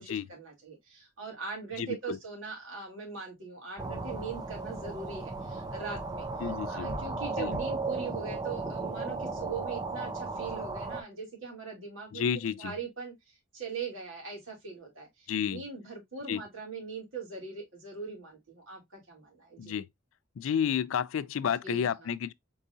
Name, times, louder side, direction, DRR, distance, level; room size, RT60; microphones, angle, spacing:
voice 1, 0.0-6.3 6.7-12.2 12.6-19.7 21.6-22.1, right 5 dB, 85° right, 2.8 m, -41 dB
voice 2, 1.7-2.2 6.4-6.9 7.4-7.5 12.1-12.7 15.3-15.6 16.3-16.4 19.6-19.9 20.4-22.3, left 7 dB, 80° left, 0.3 m, -31 dB
sound 1, 3.8-11.0, right 3 dB, 20° right, 0.5 m, -35 dB
sound 2, 5.0-9.8, left 1 dB, 45° right, 1.4 m, -48 dB
4.7 x 3.9 x 2.6 m
head